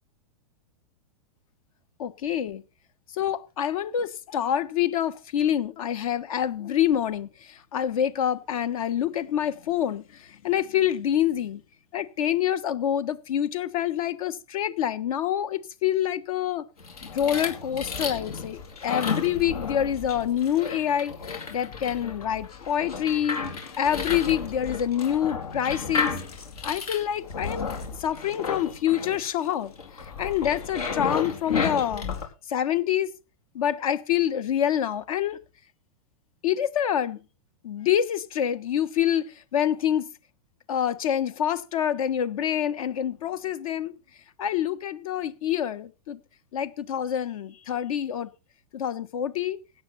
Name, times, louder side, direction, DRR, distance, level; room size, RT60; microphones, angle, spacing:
voice 1, 2.0-2.6 3.1-11.6 11.9-16.6 17.1-21.1 21.5-23.4 23.8-26.1 26.6-27.7 28.0-29.7 30.2-32.1 32.5-33.1 33.5-35.4 36.4-37.2 37.6-40.1 40.7-43.9 44.4-46.2 46.5-48.3 48.7-49.6, left 10 dB, 70° left, 1.4 m, -26 dB
sound 1, 16.8-32.2, left 5 dB, 85° left, 4.5 m, -33 dB
17.0 x 9.8 x 4.2 m
hypercardioid pair, 120°, 19 cm